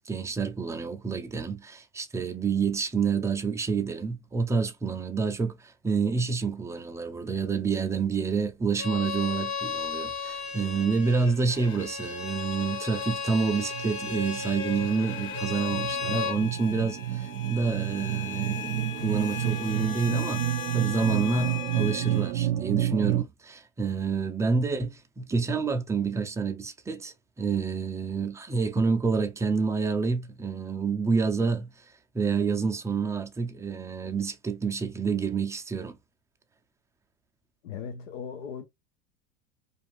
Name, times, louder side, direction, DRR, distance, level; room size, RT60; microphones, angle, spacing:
voice 1, 0.1-20.4 20.7-31.7 32.1-36.0, right 5 dB, 10° right, 0.4 m, -28 dB
Bowed string instrument, 8.8-16.4, left 5 dB, 65° left, 1.1 m, -34 dB
sound 1, 11.5-22.3, left 8 dB, 35° left, 0.7 m, -39 dB
sound 2, 13.7-23.2, right 13 dB, 65° right, 0.6 m, -30 dB
voice 2, 37.6-38.7, left 6 dB, 90° left, 0.6 m, -38 dB
2.5 x 2.4 x 3.1 m
hypercardioid pair, 100°, 36 cm